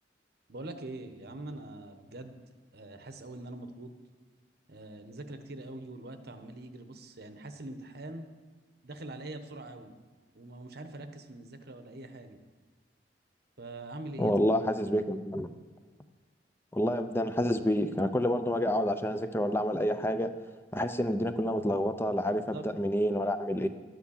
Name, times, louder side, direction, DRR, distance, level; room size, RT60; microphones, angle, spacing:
voice 1, 0.5-2.4 2.7-3.9 4.7-8.3 8.8-10.0 10.3-12.4 13.6-14.3 22.5-22.7, right 2 dB, 65° right, 8 dB, 1.1 m, -43 dB
voice 2, 14.2-15.5 16.7-20.3 20.7-23.7, equal, 15° left, 9 dB, 0.6 m, -28 dB
12.0 x 9.4 x 7.2 m, 1.4 s
head